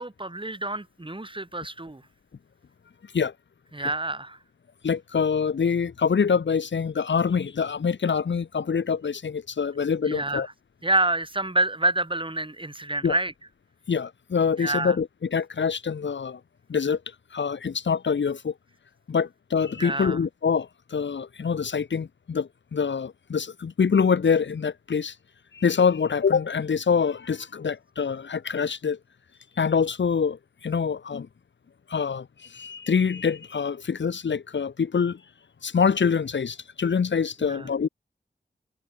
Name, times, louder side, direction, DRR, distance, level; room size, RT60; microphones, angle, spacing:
voice 1, 0.0-2.0 3.7-4.4 10.1-10.5 10.8-13.3 14.6-15.0 19.8-20.2 37.4-37.7, right 2 dB, 25° right, 4.6 m, -27 dB
voice 2, 4.8-10.5 13.0-13.1 13.9-16.4 16.7-17.0 17.3-18.5 19.1-25.1 25.5-29.0 29.6-31.3 31.9-35.2 35.6-37.9, left 6 dB, 80° left, 1.4 m, -25 dB
cardioid pair, 40°, 19 cm